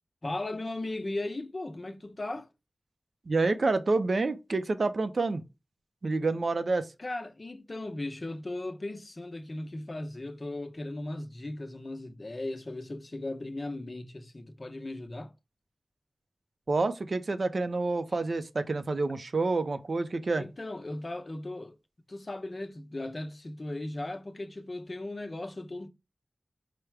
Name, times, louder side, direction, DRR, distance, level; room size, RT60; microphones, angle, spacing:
voice 1, 0.2-2.5 7.0-15.3 18.1-18.2 20.4-21.7 22.1-25.9, left 2 dB, 45° left, 0.8 m, -37 dB
voice 2, 3.3-5.4 6.0-6.9 16.7-20.4, right 3 dB, 65° right, 0.6 m, -28 dB
5.0 x 2.2 x 4.6 m
wide cardioid pair, 50°, 0 cm